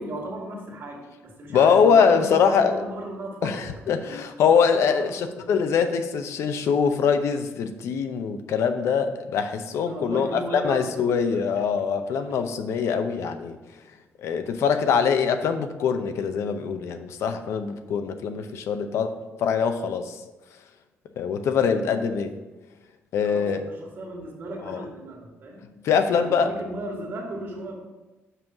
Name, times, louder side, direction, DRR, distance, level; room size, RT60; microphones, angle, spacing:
voice 1, 0.0-3.6 4.8-5.4 9.9-11.6 21.6-21.8 23.2-25.7 26.1-27.7, right 1 dB, 55° right, 0 dB, 1.9 m, -36 dB
voice 2, 1.5-2.8 3.4-13.6 14.2-19.1 19.4-20.2 21.2-22.3 23.1-23.6 24.7-24.8 25.8-26.5, left 6 dB, 75° left, 8 dB, 0.7 m, -23 dB
5.6 x 5.5 x 5.8 m, 1.1 s
cardioid pair, 145°, 5 cm